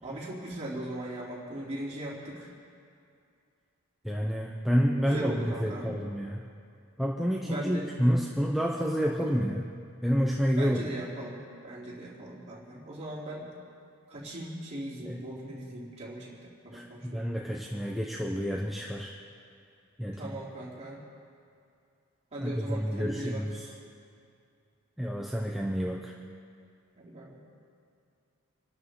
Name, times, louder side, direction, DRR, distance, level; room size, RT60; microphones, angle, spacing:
voice 1, 0.0-2.5 5.1-5.9 7.4-7.9 9.2-9.4 10.6-13.5 14.1-17.2 20.1-21.0 22.3-23.6 27.0-27.4, right 1 dB, 30° right, -6 dB, 3.7 m, -39 dB
voice 2, 4.0-5.3 5.6-6.4 7.0-9.7 10.0-10.8 15.0-15.2 16.7-19.1 20.0-20.3 22.4-23.6 25.0-26.1, equal, ahead, -2 dB, 0.8 m, -29 dB
27.5 x 12.0 x 3.9 m, 2.4 s
head